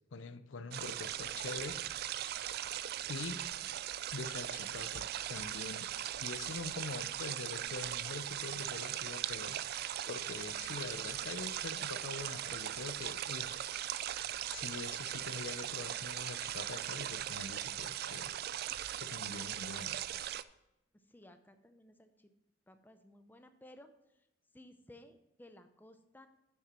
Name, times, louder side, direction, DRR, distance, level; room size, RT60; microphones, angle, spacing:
voice 1, 0.1-1.8 3.1-3.4 4.1-5.9 6.2-9.6 10.1-13.6 14.5-18.4 19.0-20.0, left 3 dB, 75° left, 13 dB, 0.5 m, -44 dB
sound 1, 0.7-20.4, right 12 dB, 55° right, 0.3 m, -39 dB
voice 2, 20.9-22.3 22.7-24.3 24.5-26.3, left 1 dB, 10° left, 8 dB, 0.5 m, -58 dB
9.8 x 6.0 x 4.3 m, 0.89 s
head